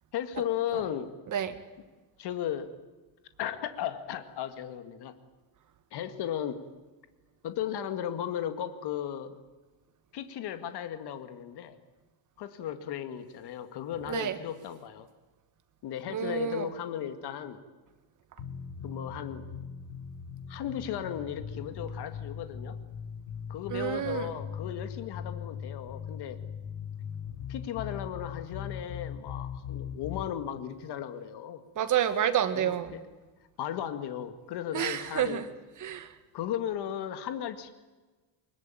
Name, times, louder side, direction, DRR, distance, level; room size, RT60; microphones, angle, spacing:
voice 1, 0.1-1.1 2.2-2.7 3.4-5.1 5.9-6.6 7.4-9.3 10.1-11.8 12.4-15.1 15.8-17.6 18.8-19.5 20.5-22.8 23.5-26.4 27.5-31.6 32.5-33.0 33.6-35.4 36.3-37.7, left 10 dB, 50° left, 9 dB, 2.1 m, -35 dB
voice 2, 16.1-16.7 23.7-24.3 31.8-32.9 34.7-35.4 35.8-36.1, right 10 dB, 35° right, 9 dB, 2.0 m, -29 dB
sound 1, 18.4-30.3, left 7 dB, 80° left, 6.4 m, -39 dB
23.5 x 22.0 x 9.2 m, 1.3 s
cardioid pair, 155°, 49 cm